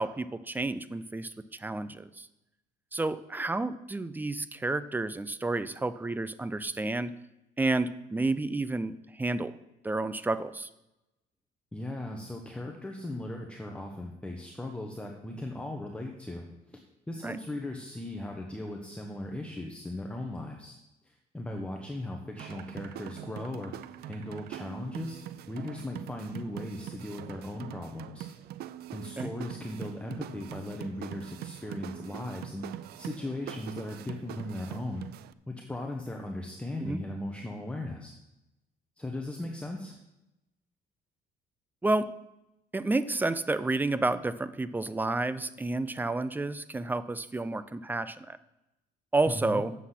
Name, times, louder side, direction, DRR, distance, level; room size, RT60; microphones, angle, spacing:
voice 1, 0.0-1.3 1.6-2.3 2.9-7.1 7.6-9.5 9.8-10.7 17.2-17.4 29.2-29.3 36.8-37.0 41.8-42.1 42.7-48.4 49.1-49.7, right 2 dB, 10° right, 14 dB, 0.4 m, -30 dB
voice 2, 11.7-16.8 17.1-20.7 21.0-23.7 24.0-25.2 25.5-28.3 28.9-35.0 35.5-38.1 39.0-39.9 49.3-49.6, left 1 dB, 5° left, 2 dB, 1.0 m, -38 dB
sound 1, 22.4-35.3, right 12 dB, 70° right, 0.5 m, -43 dB
8.1 x 7.2 x 5.8 m, 0.93 s
cardioid pair, 110°, 17 cm